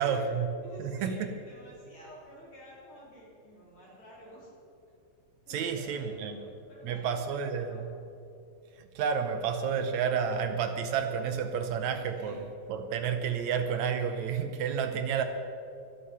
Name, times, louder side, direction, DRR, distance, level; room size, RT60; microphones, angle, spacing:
voice 1, 0.0-0.5 0.8-1.3 5.5-6.4 6.8-8.0 8.8-15.2, right 7 dB, 75° right, 7 dB, 2.1 m, -30 dB
voice 2, 0.6-4.5 5.5-7.9 12.2-12.5, equal, 45° left, -5 dB, 4.7 m, -51 dB
22.5 x 8.5 x 5.6 m, 2.6 s
omnidirectional pair, 3.4 m